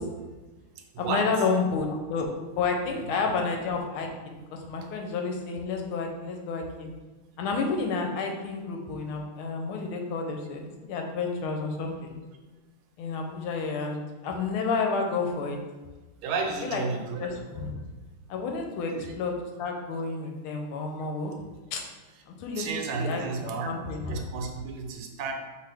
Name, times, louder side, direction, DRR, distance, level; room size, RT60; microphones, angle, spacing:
voice 1, 1.0-2.3 2.6-4.4 4.7-6.9 7.4-12.1 13.0-14.0 14.2-15.6 16.6-16.8 17.2-17.8 18.3-19.3 19.6-21.3 21.7-21.8 22.4-22.7 23.0-24.2, left 4 dB, 85° left, 2 dB, 1.5 m, -30 dB
voice 2, 16.2-17.3 18.9-19.1 22.6-23.7 24.1-25.3, right 4 dB, 80° right, 4 dB, 1.5 m, -32 dB
4.8 x 3.1 x 3.3 m, 1.2 s
omnidirectional pair, 2.3 m